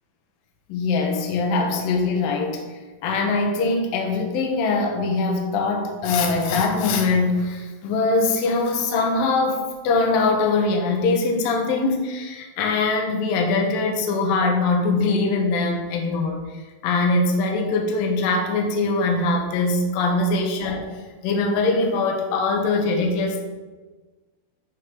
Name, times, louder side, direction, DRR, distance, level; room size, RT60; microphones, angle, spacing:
voice 1, 0.7-2.6 3.0-20.9 21.2-23.5, left 3 dB, 65° left, 2 dB, 2.9 m, -22 dB
13.0 x 5.4 x 5.1 m, 1.3 s
omnidirectional pair, 4.8 m